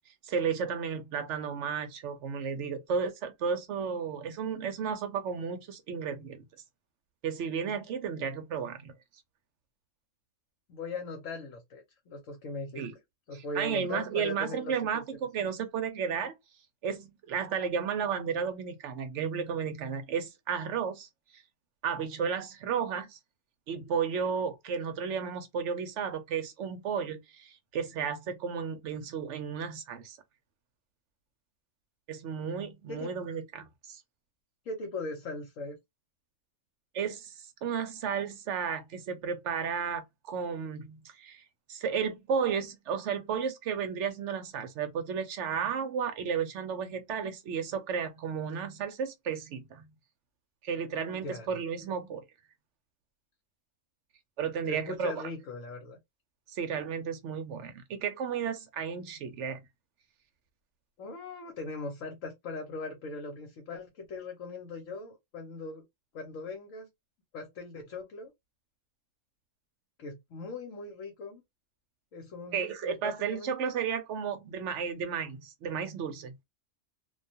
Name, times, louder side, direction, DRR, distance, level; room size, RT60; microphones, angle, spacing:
voice 1, 0.2-6.4 7.2-8.9 12.8-12.9 13.5-16.3 16.8-21.4 21.8-23.2 23.7-30.2 32.1-34.0 36.9-41.4 41.7-49.9 50.6-52.2 54.4-55.1 56.5-59.6 72.5-76.3, right 6 dB, 70° right, 0.9 m, -33 dB
voice 2, 10.7-12.8 13.3-15.0 15.4-15.5 32.9-33.1 34.6-35.8 51.2-51.5 54.7-56.0 61.0-65.8 66.1-66.9 67.3-68.3 70.0-71.4 72.1-73.5, left 3 dB, 75° left, 1.1 m, -40 dB
2.4 x 2.3 x 2.6 m
omnidirectional pair, 1.3 m